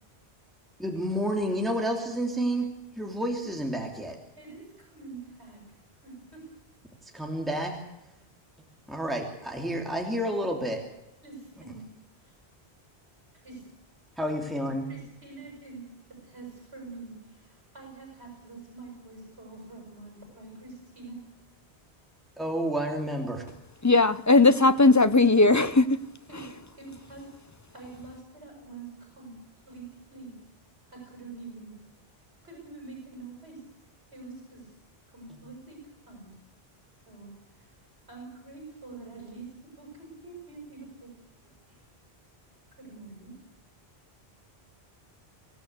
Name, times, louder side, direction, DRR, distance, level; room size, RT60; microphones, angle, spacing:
voice 1, 0.8-4.2 7.0-7.8 8.9-10.8 14.2-14.9 22.4-23.5, equal, ahead, 2.8 m, -30 dB
voice 2, 4.4-6.5 7.0-7.1 11.2-11.9 12.2-12.3 13.3-13.6 14.9-21.2 26.3-27.4 27.7-30.3 30.8-31.8 32.4-33.7 34.1-34.7 35.1-35.8 36.1-36.3 37.1-37.8 38.1-41.1 41.4-41.8 42.8-43.3, right 3 dB, 85° right, 7.4 m, -46 dB
voice 3, 23.8-26.0, left 3 dB, 20° left, 0.7 m, -18 dB
25.0 x 16.5 x 8.2 m
omnidirectional pair, 1.1 m